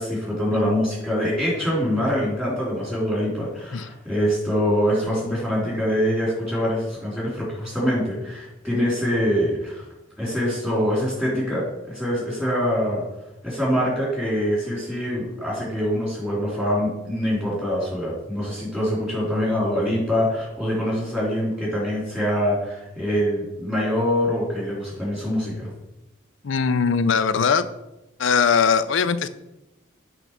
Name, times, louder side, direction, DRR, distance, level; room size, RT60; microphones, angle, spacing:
voice 1, 0.0-9.8 10.2-11.6 11.9-13.0 13.4-25.7, equal, 5° right, -6 dB, 3.2 m, -24 dB
voice 2, 26.4-27.6 28.2-29.3, left 6 dB, 75° left, 13 dB, 0.5 m, -20 dB
8.1 x 4.0 x 5.9 m, 0.96 s
head